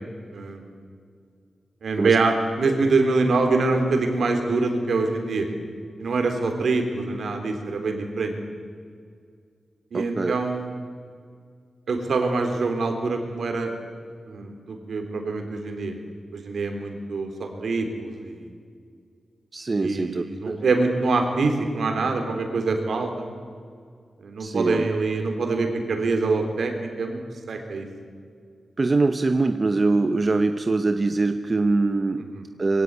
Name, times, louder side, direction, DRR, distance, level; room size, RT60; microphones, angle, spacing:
voice 1, 0.3-0.8 1.8-5.5 6.0-8.3 9.9-10.7 11.9-13.7 14.3-16.0 16.3-18.5 19.8-23.2 24.2-27.2 27.5-27.9 32.3-32.4, right 3 dB, 65° right, 5 dB, 3.6 m, -25 dB
voice 2, 9.9-10.3 19.5-20.6 24.4-24.8 28.8-32.3 32.6-32.8, right 3 dB, 30° right, 8 dB, 0.8 m, -23 dB
23.0 x 16.5 x 9.8 m, 2.1 s
wide cardioid pair, 170°, 0 cm